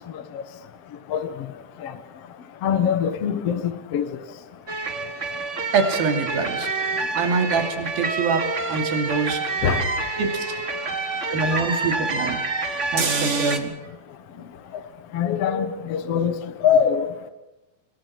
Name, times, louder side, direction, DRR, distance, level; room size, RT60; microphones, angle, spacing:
voice 1, 2.6-4.1 9.6-9.8 11.5-11.6 15.1-17.1, left 8 dB, 60° left, 10 dB, 1.6 m, -23 dB
sound 1, 4.7-13.6, right 3 dB, 45° right, 0.9 m, -27 dB
voice 2, 5.7-6.7 7.1-9.4 10.2-10.5 11.3-12.4 12.9-13.7, right 4 dB, 70° right, 6 dB, 4.4 m, -25 dB
26.0 x 21.0 x 6.0 m, 0.99 s
omnidirectional pair, 4.5 m